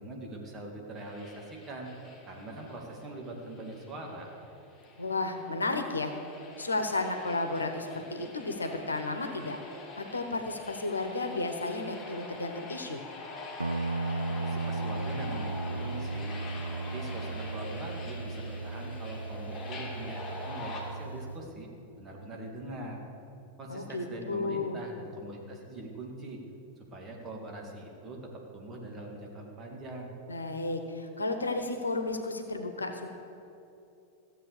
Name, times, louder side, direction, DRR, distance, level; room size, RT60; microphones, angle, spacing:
voice 1, 0.0-1.9 2.3-4.3 14.3-16.3 16.7-21.7 22.0-23.0 23.6-26.4 26.9-30.2, right 2 dB, 25° right, 0 dB, 2.4 m, -42 dB
sound 1, 1.0-20.8, left 2 dB, 20° left, 2.8 m, -45 dB
voice 2, 5.0-6.1 6.6-13.0 23.7-24.8 30.3-33.1, left 2 dB, 75° left, 7 dB, 1.1 m, -33 dB
Guitar, 13.6-21.4, right 3 dB, 80° right, 0.3 m, -36 dB
15.0 x 7.9 x 6.5 m, 2.8 s
figure-of-eight pair, 90°, 0 cm